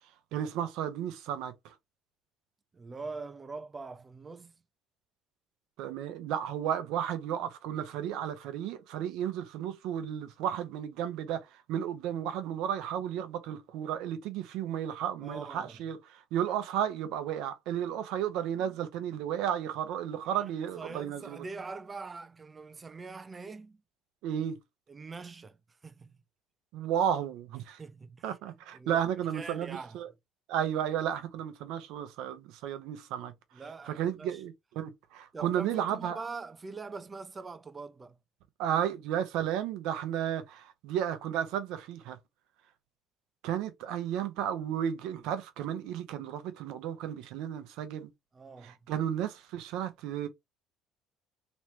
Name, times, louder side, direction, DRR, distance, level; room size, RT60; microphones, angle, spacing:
voice 1, 0.3-1.8 5.8-21.5 24.2-24.6 26.7-27.8 28.2-30.1 30.5-33.3 33.8-36.2 38.6-42.2 43.4-48.1 48.6-50.3, right 10 dB, 70° right, 0.7 m, -33 dB
voice 2, 2.7-4.5 15.2-15.8 20.3-20.4 20.8-23.8 24.9-26.2 27.8-30.0 33.5-34.4 35.3-38.2 48.3-48.8, right 4 dB, 30° right, 0.6 m, -43 dB
3.1 x 3.1 x 3.0 m
hypercardioid pair, 60°, 0 cm